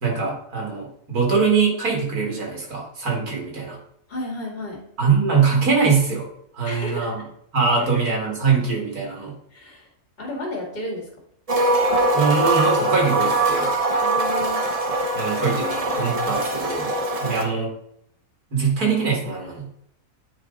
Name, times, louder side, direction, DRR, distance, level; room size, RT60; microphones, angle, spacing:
voice 1, 0.0-3.8 5.0-6.3 6.5-7.2 7.5-9.3 12.1-13.7 15.1-16.9 17.2-17.7 18.5-19.7, right 5 dB, 80° right, -1 dB, 2.6 m, -22 dB
voice 2, 4.1-4.9 6.6-7.2 7.8-7.9 9.5-9.9 10.2-11.1 14.0-14.6 17.2-17.5, equal, 40° left, -3 dB, 2.3 m, -32 dB
sound 1, 11.5-17.4, right 2 dB, 30° right, 0.9 m, -22 dB
9.1 x 4.7 x 3.9 m, 0.72 s
omnidirectional pair, 1.6 m